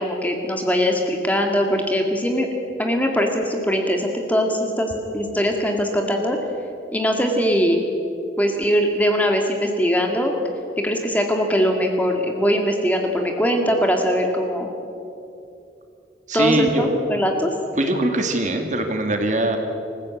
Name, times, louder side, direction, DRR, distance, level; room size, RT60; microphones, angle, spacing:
voice 1, 0.0-2.5 2.8-6.4 6.9-7.8 8.4-10.3 10.8-14.7 16.3-17.5, equal, 10° left, 2 dB, 2.0 m, -21 dB
voice 2, 16.3-16.8 17.8-19.6, right 1 dB, 40° right, 4 dB, 2.3 m, -22 dB
25.5 x 15.5 x 8.7 m, 2.7 s
head